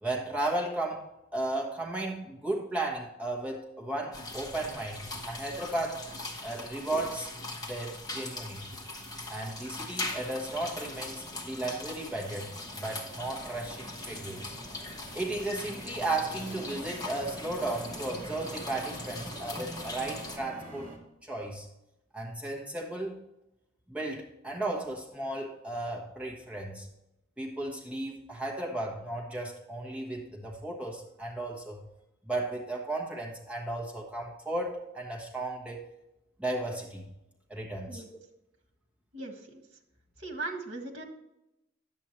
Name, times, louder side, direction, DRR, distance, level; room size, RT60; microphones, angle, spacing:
voice 1, 0.0-1.1 1.3-6.1 6.4-7.3 7.6-8.6 9.3-14.6 15.1-20.9 21.2-21.7 22.1-23.2 23.9-26.9 27.4-31.9 32.2-35.8 36.4-37.1 37.5-38.0, right 2 dB, 5° right, -2 dB, 1.3 m, -35 dB
sound 1, 4.1-20.4, left 2 dB, 20° left, 1.3 m, -41 dB
sound 2, 9.9-21.0, right 1 dB, 40° right, 2.1 m, -46 dB
voice 2, 39.1-39.6 40.2-41.0, right 2 dB, 60° right, 3 dB, 1.7 m, -38 dB
10.5 x 8.1 x 3.1 m, 0.89 s
head